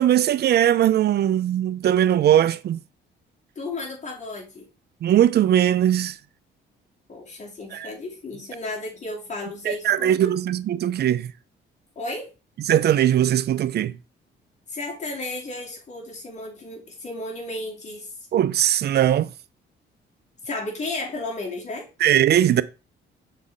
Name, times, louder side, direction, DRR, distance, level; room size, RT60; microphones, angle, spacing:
voice 1, 0.0-2.8 5.0-6.1 7.7-7.9 9.6-11.3 12.7-13.9 18.3-19.3 22.0-22.6, right 11 dB, 55° right, 0.5 m, -20 dB
voice 2, 3.6-4.7 7.1-10.3 12.0-12.3 14.7-18.1 20.4-21.9, left 2 dB, 35° left, 2.7 m, -33 dB
6.3 x 4.1 x 3.6 m
cardioid pair, 90°, 20 cm